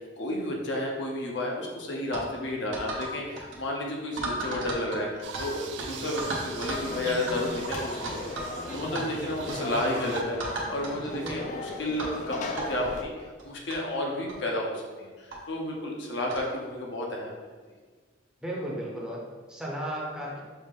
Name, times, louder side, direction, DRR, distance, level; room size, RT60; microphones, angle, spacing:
voice 1, 0.0-8.3 8.7-13.1 13.4-17.3, left 1 dB, 70° left, -1 dB, 0.7 m, -32 dB
sound 1, 2.1-2.3 2.7-3.1 3.4-3.6 4.2-5.5 5.8-5.9 6.2-6.9 7.3-7.4 7.7-8.5 8.8-9.0 9.5-9.7 10.2-10.9 11.2-11.4 12.0-12.2 12.6-12.7 13.4-13.5 13.7-13.8 14.3-14.4 15.3-15.4 16.3-16.5, right 2 dB, 90° right, 1.0 m, -34 dB
sound 2, 5.2-10.2, right 5 dB, 70° right, 0.3 m, -42 dB
Conversation / Crowd, 6.8-13.0, left 3 dB, 40° left, 0.3 m, -38 dB
voice 2, 8.7-9.8 11.0-11.5 18.4-20.4, equal, 5° right, -4 dB, 0.6 m, -37 dB
5.4 x 2.5 x 3.5 m, 1.4 s
head